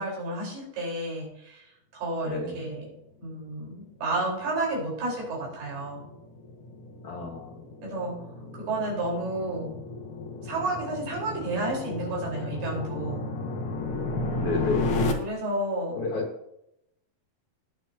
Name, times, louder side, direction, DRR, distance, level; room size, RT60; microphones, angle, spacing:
voice 1, 0.0-2.9 3.2-6.1 7.8-8.2 8.5-9.8 10.4-13.3 15.1-16.0, right 2 dB, 75° right, -3 dB, 6.6 m, -31 dB
voice 2, 2.3-2.6 7.0-7.5 14.4-14.8 16.0-16.2, left 4 dB, 55° left, -1 dB, 2.8 m, -30 dB
sound 1, 4.0-15.1, left 2 dB, 80° left, 1.2 m, -33 dB
19.0 x 7.9 x 2.9 m, 0.81 s
omnidirectional pair, 4.5 m